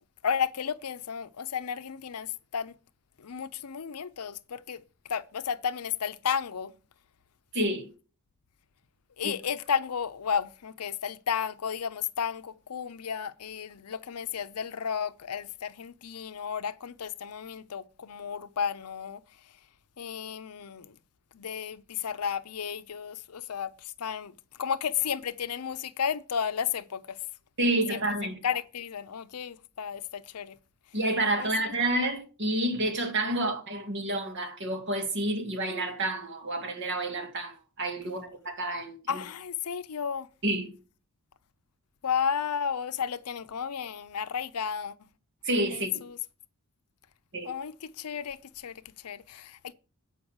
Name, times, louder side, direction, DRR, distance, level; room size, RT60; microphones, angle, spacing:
voice 1, 0.2-2.7 3.2-4.8 5.1-6.7 9.2-19.2 20.0-21.0 21.3-24.3 24.6-27.2 27.9-28.0 28.4-30.6 31.4-31.7 38.0-38.1 39.1-40.3 42.0-45.1 45.7-46.2 47.4-49.7, left 7 dB, 85° left, 0.6 m, -33 dB
voice 2, 7.5-7.9 9.2-9.3 27.6-28.4 30.9-39.2 40.4-40.7 45.4-46.0 47.3-47.5, right 1 dB, 55° right, 2.1 m, -29 dB
8.6 x 5.5 x 6.3 m
head